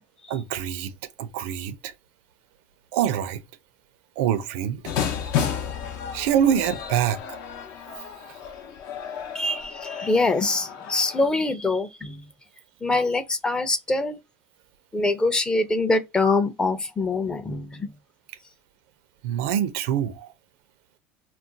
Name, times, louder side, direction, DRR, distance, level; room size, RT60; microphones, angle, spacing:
voice 1, 0.3-0.9 1.2-1.9 2.9-3.4 4.2-4.8 6.1-7.2 19.2-20.3, right 9 dB, 85° right, 0.5 m, -25 dB
sound 1, 4.8-11.3, left 8 dB, 70° left, 0.6 m, -32 dB
voice 2, 9.3-12.2 12.8-14.2 14.9-17.9, left 3 dB, 15° left, 0.5 m, -24 dB
2.4 x 2.2 x 3.8 m
cardioid pair, 135°, 5 cm